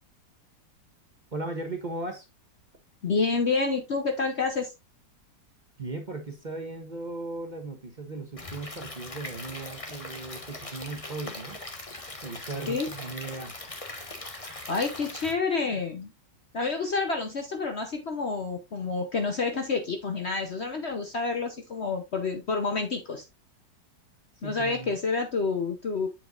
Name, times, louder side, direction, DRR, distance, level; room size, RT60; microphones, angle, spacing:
voice 1, 1.3-2.3 5.8-11.6 12.2-13.5 24.4-25.0, right 2 dB, 30° right, 1.1 m, -37 dB
voice 2, 3.0-4.7 12.7-12.9 14.3-16.1 16.5-23.3 24.4-26.1, left 4 dB, 50° left, 1.0 m, -29 dB
Stream / Liquid, 8.4-15.3, left 2 dB, 20° left, 1.3 m, -40 dB
7.8 x 7.3 x 2.5 m
omnidirectional pair, 1.9 m